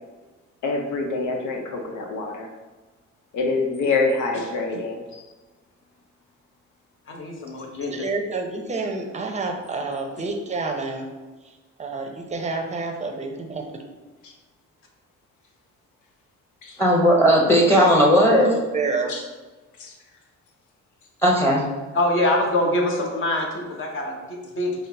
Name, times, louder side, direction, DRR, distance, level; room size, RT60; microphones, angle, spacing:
voice 1, 0.6-2.5 3.3-5.2 16.6-16.8 19.1-19.2 19.8-19.9, left 3 dB, 75° left, 1 dB, 0.7 m, -26 dB
voice 2, 7.1-7.9 21.9-24.7, left 1 dB, 45° left, 0 dB, 1.0 m, -24 dB
voice 3, 7.9-11.1 11.4-11.5 11.8-13.8 18.4-19.1, right 3 dB, 25° right, 3 dB, 0.6 m, -29 dB
voice 4, 16.8-18.5 21.2-21.6, equal, 10° left, -2 dB, 0.9 m, -16 dB
5.5 x 2.0 x 3.3 m, 1.3 s
cardioid pair, 90°, 30 cm